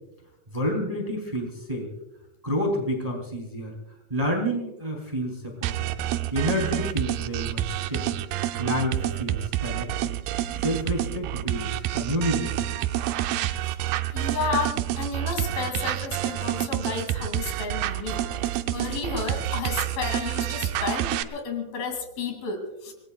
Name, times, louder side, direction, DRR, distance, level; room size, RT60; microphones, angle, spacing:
voice 1, 0.5-1.9 2.4-3.8 4.1-5.9 6.3-8.2 8.6-10.1 10.6-12.8, equal, 10° right, 0 dB, 2.8 m, -29 dB
sound 1, 5.6-21.2, right 13 dB, 80° right, 2.5 m, -28 dB
voice 2, 14.1-18.2 18.7-22.9, left 5 dB, 70° left, 4 dB, 4.5 m, -32 dB
26.5 x 20.0 x 2.4 m, 0.95 s
omnidirectional pair, 4.3 m